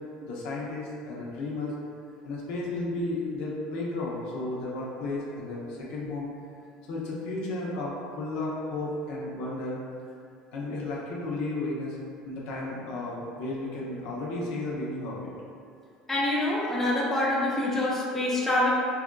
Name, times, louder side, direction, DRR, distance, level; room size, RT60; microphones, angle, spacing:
voice 1, 0.2-1.7 2.2-6.3 6.9-9.8 10.5-12.0 12.2-15.3, left 2 dB, 70° left, -5 dB, 0.6 m, -33 dB
voice 2, 16.1-18.7, left 1 dB, 10° left, -6 dB, 0.5 m, -26 dB
3.4 x 2.4 x 2.2 m, 2.3 s
supercardioid pair, 125°, 3 cm